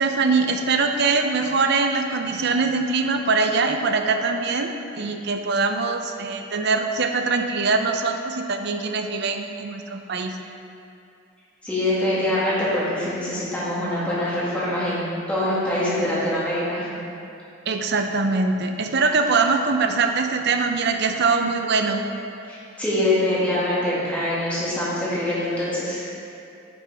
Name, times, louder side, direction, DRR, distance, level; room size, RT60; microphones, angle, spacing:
voice 1, 0.0-10.4 17.7-22.1, right 4 dB, 50° right, 5 dB, 0.5 m, -22 dB
voice 2, 11.6-16.9 22.5-26.0, left 1 dB, 5° left, -10 dB, 2.0 m, -24 dB
9.5 x 6.5 x 3.4 m, 2.6 s
head